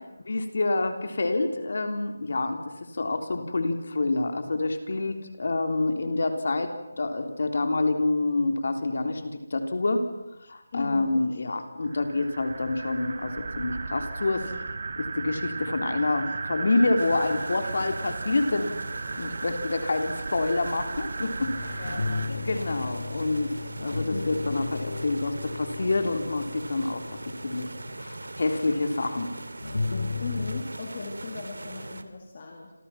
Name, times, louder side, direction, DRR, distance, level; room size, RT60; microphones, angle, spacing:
voice 1, 0.3-2.6 2.9-6.7 7.0-10.1 10.5-14.5 15.0-18.7 19.2-21.9 22.4-27.7 28.0-29.3, left 2 dB, 40° left, 6 dB, 3.5 m, -27 dB
voice 2, 10.7-11.3 21.8-22.1 30.2-32.7, left 4 dB, 25° left, 1 dB, 2.4 m, -37 dB
sound 1, 11.8-22.3, right 4 dB, 30° right, 1.6 m, -35 dB
sound 2, 17.0-32.0, right 2 dB, 90° right, 3.0 m, -41 dB
sound 3, 21.4-28.1 29.6-30.6, left 3 dB, 70° left, 3.0 m, -34 dB
29.0 x 27.5 x 5.9 m, 0.95 s
figure-of-eight pair, 180°, 0 cm